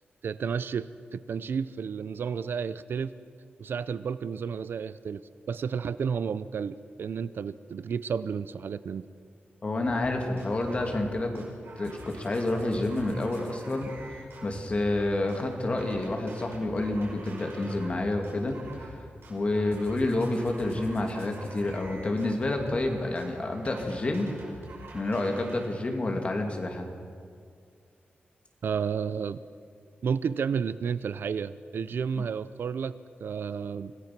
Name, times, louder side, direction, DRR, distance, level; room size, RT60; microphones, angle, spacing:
voice 1, 0.2-3.1 3.6-5.2 5.5-9.0 28.6-29.4 30.0-32.9 33.2-33.9, right 6 dB, 65° right, 15 dB, 0.6 m, -31 dB
voice 2, 9.6-11.4 11.8-18.9 19.3-24.4 24.9-26.9 32.2-32.3, left 2 dB, 30° left, 3 dB, 2.6 m, -29 dB
sound 1, 9.9-10.1 10.4-11.1 11.3-18.0 18.2-19.0 19.2-25.6, right 2 dB, 80° right, 5.6 m, -46 dB
25.5 x 16.5 x 6.0 m, 2.2 s
wide cardioid pair, 155°, 4 cm